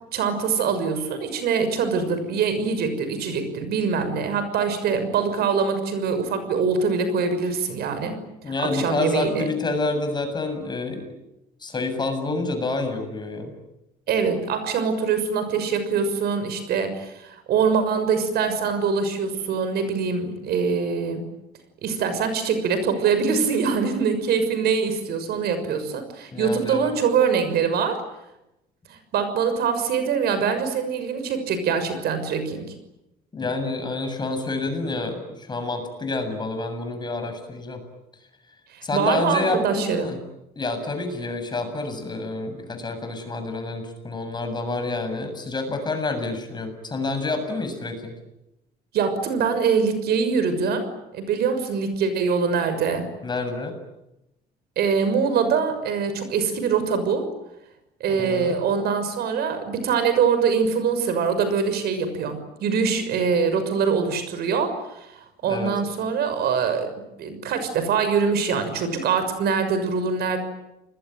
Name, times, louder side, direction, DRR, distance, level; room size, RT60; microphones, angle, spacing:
voice 1, 0.1-8.2 8.6-9.5 14.1-21.3 21.8-28.0 28.9-32.7 38.7-40.1 48.9-50.9 51.1-53.1 54.8-57.3 58.0-65.1 65.4-66.9 67.2-70.4, right 6 dB, 70° right, 10 dB, 6.2 m, -23 dB
voice 2, 8.4-11.1 11.6-13.5 26.3-26.9 33.3-37.8 38.8-40.2 40.6-48.1 53.2-53.7 58.1-58.6 65.5-65.7, left 3 dB, 25° left, 7 dB, 7.5 m, -28 dB
29.0 x 21.0 x 9.2 m, 0.90 s
cardioid pair, 110°, 17 cm